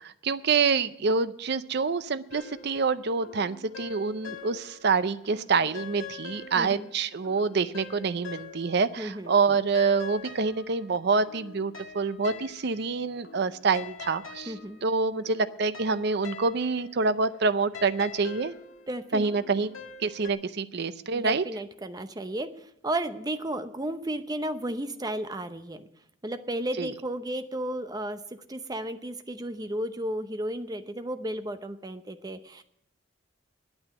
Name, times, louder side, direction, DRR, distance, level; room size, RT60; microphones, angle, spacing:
voice 1, 0.0-14.5 14.8-18.5 19.1-19.7 20.0-21.4 26.8-26.9, right 4 dB, 55° right, 13 dB, 0.5 m, -26 dB
sound 1, 2.3-4.9 5.2-9.0 9.2-20.3, left 6 dB, 80° left, 1.5 m, -45 dB
voice 2, 6.6-6.9 9.0-9.3 14.5-14.8 18.9-19.4 21.1-25.8 26.2-28.2 28.5-32.6, right 1 dB, 20° right, 9 dB, 0.7 m, -33 dB
9.6 x 8.9 x 9.5 m, 0.75 s
head